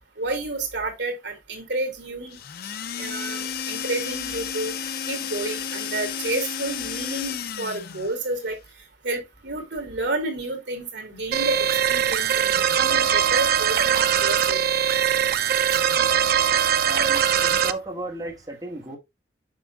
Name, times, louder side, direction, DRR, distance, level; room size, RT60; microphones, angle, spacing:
voice 1, 0.2-2.4 3.0-4.7 5.1-8.6 9.0-14.6 15.7-15.8, right 2 dB, 70° right, 2.5 m, -30 dB
sound 1, 2.3-8.2, left 7 dB, 55° left, 0.6 m, -32 dB
sound 2, 11.3-17.7, right 9 dB, 55° right, 0.5 m, -21 dB
voice 2, 16.9-19.0, right 1 dB, 20° right, 1.9 m, -35 dB
7.3 x 6.0 x 2.3 m
head